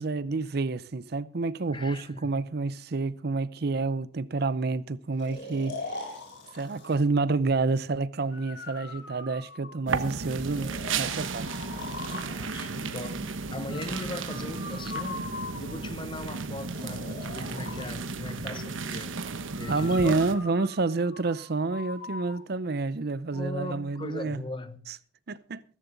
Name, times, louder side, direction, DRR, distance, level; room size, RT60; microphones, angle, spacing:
voice 1, 0.0-6.0 6.5-11.5 19.7-24.4 24.9-25.0 25.3-25.6, right 3 dB, 55° right, 0.6 m, -29 dB
voice 2, 1.7-2.5 12.2-19.2 19.5-20.2 23.3-24.9, left 2 dB, 25° left, 0.8 m, -39 dB
Breathing, 5.2-7.0 8.3-10.0 10.5-12.3 13.7-16.0 16.7-17.9 19.5-22.4, left 3 dB, 65° left, 4.0 m, -41 dB
sound 1, 9.9-20.4, right 4 dB, 85° right, 1.1 m, -34 dB
14.5 x 14.0 x 3.9 m
head